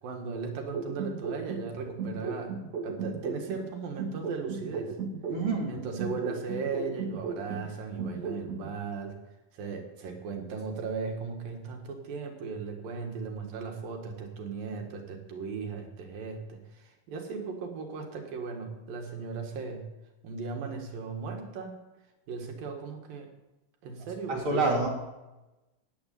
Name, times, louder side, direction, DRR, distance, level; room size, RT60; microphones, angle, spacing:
voice 1, 0.0-2.6 2.8-4.9 5.7-9.2 9.5-19.8 20.2-21.7 22.3-23.3 23.8-24.8, right 5 dB, 80° right, 3 dB, 3.7 m, -37 dB
sound 1, 0.7-3.7 4.0-7.7 8.0-8.7, right 5 dB, 55° right, 2.5 m, -35 dB
voice 2, 5.3-5.7 24.3-24.9, right 3 dB, 40° right, -1 dB, 3.4 m, -27 dB
13.5 x 7.7 x 9.5 m, 1.0 s
omnidirectional pair, 4.0 m